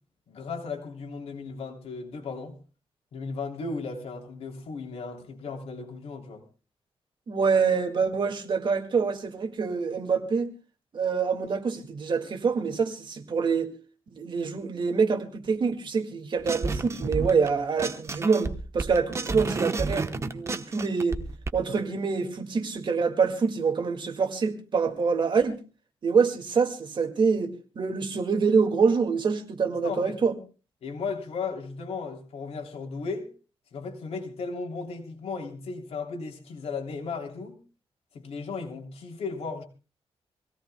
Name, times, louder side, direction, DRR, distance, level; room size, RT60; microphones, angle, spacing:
voice 1, 0.3-2.6 3.1-6.4 29.8-30.2 30.8-33.3 33.7-37.6 38.1-39.6, left 4 dB, 80° left, 3.1 m, -35 dB
voice 2, 7.3-10.5 10.9-13.7 14.2-21.2 21.5-25.6 26.0-30.4, right 5 dB, 50° right, 2.0 m, -26 dB
sound 1, 16.5-17.5 17.8-21.5, right 3 dB, 30° right, 0.9 m, -30 dB
25.5 x 17.0 x 2.2 m
wide cardioid pair, 125°, 10 cm